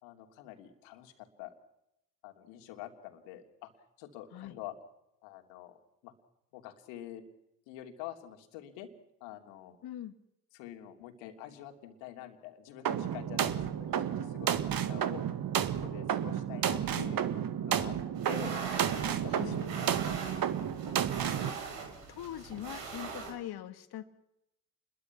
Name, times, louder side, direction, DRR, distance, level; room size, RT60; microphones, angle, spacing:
voice 1, 0.0-1.5 2.2-3.7 4.0-4.7 5.2-5.8 6.0-6.1 6.5-7.2 7.7-8.9 9.2-9.8 10.5-15.2 15.6-17.3 17.6-17.9 18.3-18.5 19.1-20.4, left 12 dB, 70° left, 5 dB, 3.0 m, -47 dB
voice 2, 9.8-10.2 19.3-19.6 22.1-24.1, left 12 dB, 55° left, 11 dB, 2.1 m, -42 dB
sound 1, 12.8-21.5, right 9 dB, 50° right, 1.8 m, -32 dB
sound 2, 18.1-23.3, right 5 dB, 65° right, 5.8 m, -41 dB
28.5 x 22.0 x 6.0 m, 0.84 s
hypercardioid pair, 55°, 46 cm